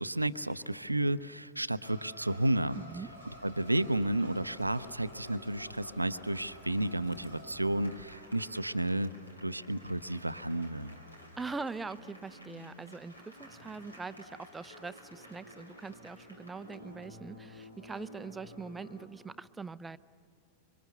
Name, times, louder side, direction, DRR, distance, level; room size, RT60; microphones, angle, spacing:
voice 1, 0.0-2.8 3.4-9.1 9.4-10.9, right 1 dB, 85° right, 14 dB, 0.6 m, -32 dB
sound 1, 1.8-19.1, equal, 85° left, 2.8 m, -51 dB
voice 2, 2.7-3.1 11.4-20.0, right 4 dB, 10° right, 16 dB, 0.5 m, -42 dB
sound 2, 3.0-8.1, left 2 dB, 60° left, 3.9 m, -58 dB
26.0 x 24.5 x 6.8 m, 2.7 s
figure-of-eight pair, 90°, 0 cm